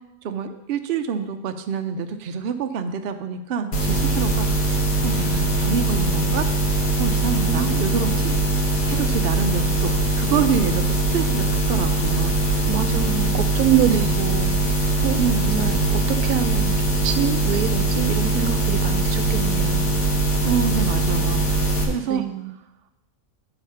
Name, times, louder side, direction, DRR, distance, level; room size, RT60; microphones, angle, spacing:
voice 1, 0.2-6.5 7.0-8.3 8.6-9.9 10.1-12.4 13.9-14.1 15.2-15.9 20.4-22.2, right 6 dB, 60° right, 7 dB, 0.6 m, -27 dB
sound 1, 3.7-21.8, right 2 dB, 75° left, 1.7 m, -21 dB
voice 2, 7.4-8.4 12.7-14.6 15.0-15.2 15.4-20.1 21.9-22.5, right 11 dB, 80° right, 9 dB, 1.0 m, -26 dB
8.9 x 4.0 x 5.6 m, 0.99 s
omnidirectional pair, 1.5 m